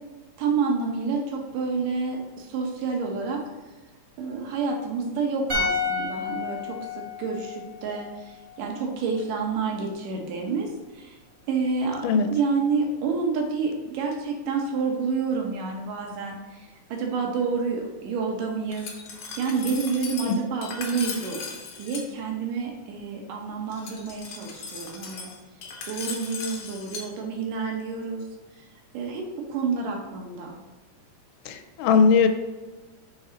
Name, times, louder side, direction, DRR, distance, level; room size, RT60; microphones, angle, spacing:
voice 1, 0.4-3.4 4.2-11.2 11.5-18.9 19.4-21.4 21.8-25.3 25.9-28.2 28.9-30.5, right 4 dB, 85° right, 1 dB, 2.6 m, -29 dB
sound 1, 5.5-8.7 9.0-9.1, left 4 dB, 55° right, 0.8 m, -31 dB
Glass, 18.7-22.1 23.7-27.1, left 5 dB, 70° left, 1.5 m, -37 dB
voice 2, 31.5-32.3, left 5 dB, 85° left, 7 dB, 2.1 m, -19 dB
6.5 x 4.2 x 3.9 m, 1.2 s
omnidirectional pair, 3.7 m